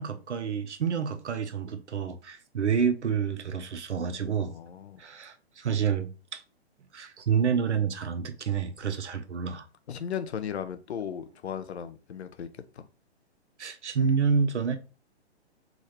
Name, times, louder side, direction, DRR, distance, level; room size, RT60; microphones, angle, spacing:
voice 1, 0.0-4.5 5.0-6.1 6.9-9.7 13.6-14.8, right 6 dB, 85° right, 0.9 m, -28 dB
voice 2, 4.4-5.0 9.9-12.5 12.8-12.9, left 8 dB, 75° left, 0.8 m, -36 dB
4.0 x 3.7 x 3.3 m
hypercardioid pair, 130°, 34 cm